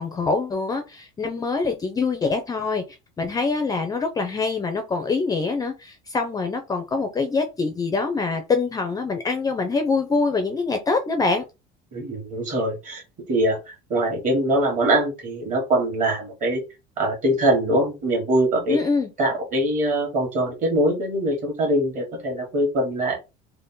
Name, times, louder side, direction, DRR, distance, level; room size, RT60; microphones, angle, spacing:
voice 1, 0.0-2.8 3.2-11.4 18.7-19.1, left 4 dB, 20° left, 0.5 m, -24 dB
voice 2, 11.9-13.0 13.3-16.6 17.0-18.8 19.2-23.2, right 1 dB, 40° right, 1.7 m, -23 dB
3.5 x 2.1 x 3.8 m
cardioid pair, 145°, 20 cm